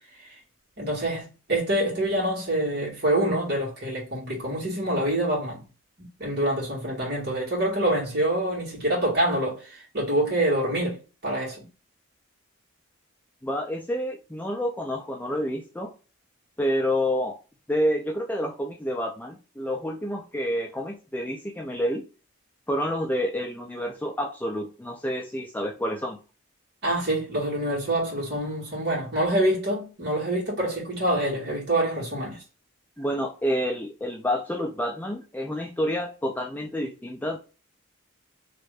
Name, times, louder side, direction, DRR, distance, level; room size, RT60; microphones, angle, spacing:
voice 1, 0.8-5.6 6.2-11.6 26.8-32.4, right 1 dB, 50° right, 1.9 m, -26 dB
voice 2, 13.4-15.9 16.6-17.4 17.7-22.1 22.7-26.2 33.0-37.4, equal, 10° left, 0.4 m, -28 dB
3.2 x 2.6 x 3.3 m
head